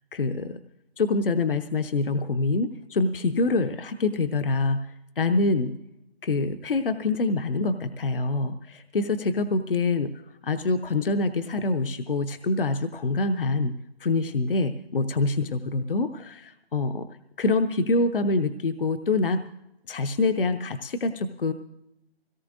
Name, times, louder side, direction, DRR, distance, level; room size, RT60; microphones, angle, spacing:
voice 1, 0.1-0.6 1.0-5.7 6.2-10.1 10.4-13.7 14.0-17.1 17.4-19.4 19.9-21.5, left 3 dB, 60° left, 9 dB, 0.7 m, -25 dB
21.0 x 17.5 x 2.6 m, 0.86 s
figure-of-eight pair, 170°, 31 cm